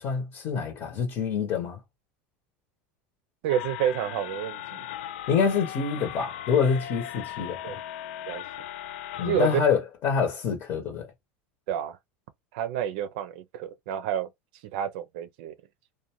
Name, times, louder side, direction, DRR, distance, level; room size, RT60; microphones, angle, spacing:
voice 1, 0.0-1.8 5.3-7.8 9.2-11.1, left 6 dB, 45° left, 0.8 m, -26 dB
voice 2, 3.4-4.8 7.6-7.8 8.3-8.5 9.3-9.5 11.7-12.0 12.5-14.3 14.7-15.5, right 9 dB, 70° right, 0.4 m, -29 dB
sound 1, 3.5-9.6, left 12 dB, 85° left, 0.4 m, -38 dB
2.5 x 2.2 x 2.9 m
supercardioid pair, 135°, 6 cm